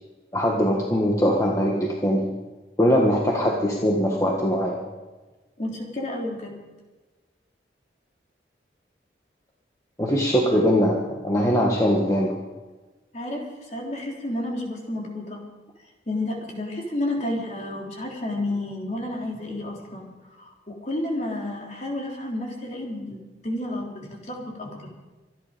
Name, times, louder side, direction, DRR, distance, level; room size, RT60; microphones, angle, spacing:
voice 1, 0.3-2.3 2.8-4.8 10.0-12.4, equal, 20° left, -1 dB, 1.5 m, -21 dB
voice 2, 5.6-6.6 13.1-15.4 16.1-20.1 20.4-24.9, left 1 dB, 40° left, 0 dB, 3.5 m, -31 dB
25.0 x 10.5 x 5.2 m, 1.2 s
head